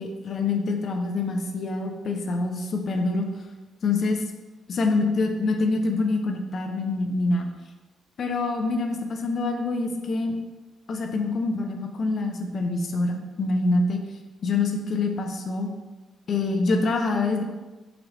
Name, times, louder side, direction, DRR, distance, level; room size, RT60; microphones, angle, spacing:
voice 1, 0.0-3.3 3.8-4.2 4.7-7.5 8.2-10.3 10.9-14.0 14.4-15.7 16.3-17.4, left 3 dB, 50° left, 3 dB, 0.5 m, -25 dB
3.9 x 2.8 x 3.1 m, 1.2 s
cardioid pair, 90°, 0 cm